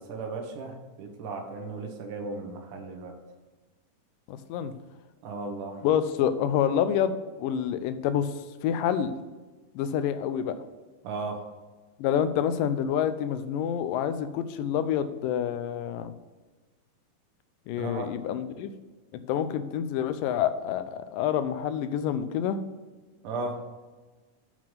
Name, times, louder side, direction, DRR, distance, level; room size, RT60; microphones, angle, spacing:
voice 1, 0.0-3.1 5.2-5.8 11.0-11.5 17.8-18.1 23.2-23.6, right 3 dB, 75° right, 3 dB, 2.6 m, -35 dB
voice 2, 4.3-4.7 5.8-8.3 8.6-9.1 9.8-10.6 12.0-16.1 17.7-18.7 19.3-22.6, left 9 dB, 90° left, 11 dB, 2.3 m, -27 dB
7.5 x 4.9 x 5.6 m, 1.3 s
omnidirectional pair, 3.8 m